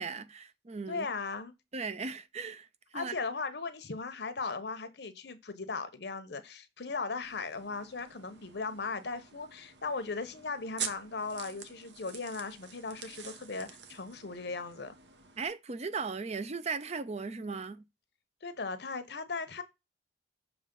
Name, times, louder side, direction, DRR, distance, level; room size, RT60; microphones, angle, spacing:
voice 1, 0.0-1.1 1.7-2.7 2.9-3.1 15.4-17.8, right 4 dB, 40° right, 0.6 m, -37 dB
voice 2, 0.9-1.5 2.9-14.9 18.4-19.6, left 4 dB, 65° left, 0.9 m, -37 dB
sound 1, 7.2-15.5, right 7 dB, 75° right, 1.1 m, -46 dB
7.0 x 3.1 x 5.3 m
head